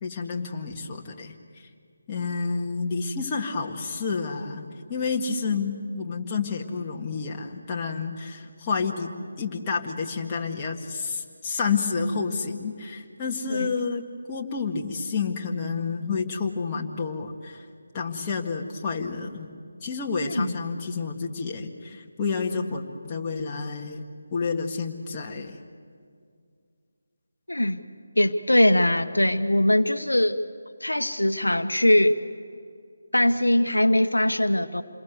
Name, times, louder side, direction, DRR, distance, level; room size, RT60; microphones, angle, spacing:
voice 1, 0.0-1.7 2.1-17.6 17.9-19.5 19.8-24.0 24.3-25.6, left 5 dB, 20° left, -1 dB, 1.8 m, -30 dB
voice 2, 27.5-27.8 28.2-30.4 30.8-32.2 33.1-34.8, left 1 dB, 85° left, 9 dB, 1.1 m, -21 dB
28.0 x 22.0 x 8.1 m, 2.2 s
figure-of-eight pair, 155°, 0 cm